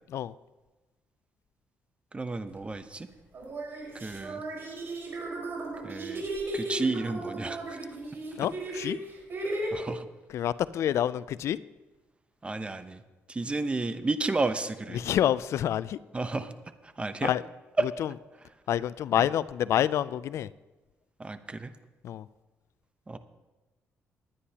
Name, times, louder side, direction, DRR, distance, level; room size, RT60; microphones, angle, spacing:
voice 1, 2.1-3.1 3.9-4.4 5.8-6.2 6.5-7.8 9.7-10.1 12.4-13.0 13.3-15.0 16.1-16.5 16.8-17.3 17.8-17.9 21.2-21.7 23.1-23.2, right 3 dB, 20° right, 11 dB, 0.8 m, -31 dB
sound 1, 2.5-2.7 3.3-9.7, right 2 dB, 50° right, 4.8 m, -36 dB
voice 2, 8.4-9.0 10.3-11.6 14.9-16.0 17.2-17.4 18.0-18.1 18.7-20.5 22.0-22.3, left 11 dB, 70° left, 17 dB, 0.3 m, -27 dB
19.5 x 9.9 x 2.9 m, 1.2 s
cardioid pair, 85°, 5 cm